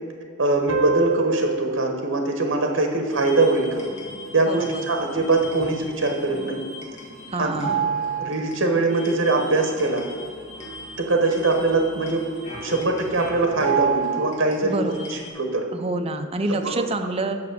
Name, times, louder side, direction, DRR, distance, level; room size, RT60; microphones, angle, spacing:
voice 1, 0.4-3.8 4.3-6.6 7.4-7.6 8.2-10.0 11.0-12.3 12.6-15.7 16.5-16.8, right 2 dB, 65° right, 4 dB, 1.1 m, -22 dB
sound 1, 0.7-3.8, right 3 dB, 80° right, 0.7 m, -29 dB
sound 2, 3.1-15.3, right 6 dB, 35° left, 1.6 m, -33 dB
voice 2, 4.5-4.8 7.3-7.8 14.6-15.1 15.7-17.4, right 2 dB, 30° right, 6 dB, 0.6 m, -27 dB
7.1 x 6.0 x 6.6 m, 2.2 s
head